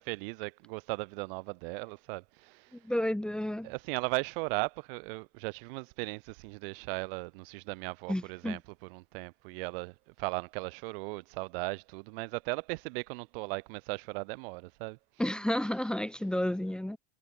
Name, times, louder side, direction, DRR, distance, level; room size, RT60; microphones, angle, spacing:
voice 1, 0.0-2.8 3.6-15.3, right 28 dB, 70° right, 5.5 m, -37 dB
voice 2, 2.7-3.7 8.1-8.6 15.2-17.0, left 1 dB, 5° left, 1.9 m, -31 dB
supercardioid pair, 120°, 29 cm